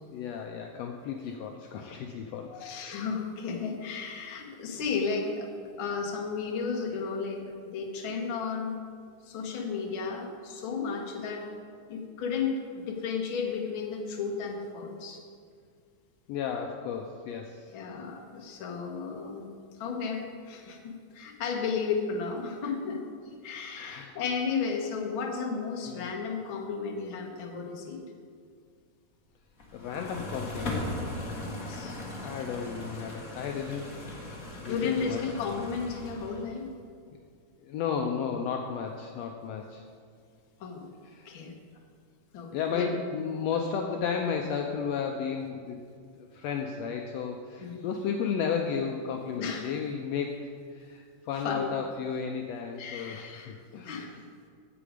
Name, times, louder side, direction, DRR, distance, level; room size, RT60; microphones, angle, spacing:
voice 1, 0.1-2.9 16.3-17.7 23.7-24.2 25.8-26.1 29.7-31.0 32.2-33.9 34.6-35.2 37.6-39.8 41.0-41.3 42.5-45.8 46.2-54.1, left 6 dB, 80° left, 3 dB, 1.6 m, -33 dB
voice 2, 2.6-5.5 5.8-8.8 9.2-11.5 11.9-15.2 17.7-19.5 19.8-28.0 31.4-32.0 34.7-36.7 40.6-40.9 41.2-41.5 42.3-42.9 47.6-47.9 49.4-49.8 51.4-51.7 52.8-54.2, left 5 dB, 55° left, 1 dB, 1.5 m, -34 dB
sound 1, 29.6-36.6, left 1 dB, 40° left, 1.4 m, -38 dB
10.0 x 7.7 x 5.0 m, 2.1 s
omnidirectional pair, 3.4 m